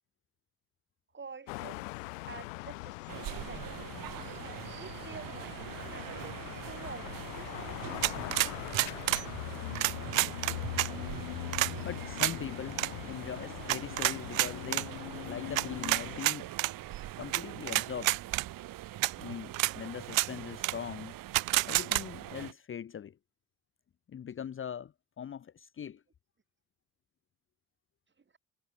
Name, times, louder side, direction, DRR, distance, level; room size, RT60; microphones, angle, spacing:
voice 1, 1.1-1.9 2.2-3.8 4.4-6.4 6.6-8.0, right 5 dB, 25° right, 5.0 m, -49 dB
sound 1, 1.5-16.2, left 23 dB, 75° left, 0.6 m, -41 dB
sound 2, 3.1-22.5, right 14 dB, 55° right, 2.1 m, -43 dB
sound 3, 8.0-9.2 9.7-10.9 11.5-11.7 12.2-12.3 12.7-12.9 13.7-14.8 15.5-16.7 17.3-17.4 17.7-18.4 19.0-19.1 19.5-19.7 20.1-20.3 20.6-20.7 21.3-22.0, right 19 dB, 80° right, 0.6 m, -28 dB
voice 2, 11.8-12.8 13.1-14.9 15.3-16.5 17.2-18.2 19.2-21.1 21.6-23.2 24.1-26.0, left 8 dB, 30° left, 0.9 m, -41 dB
figure-of-eight pair, 55°, 40 cm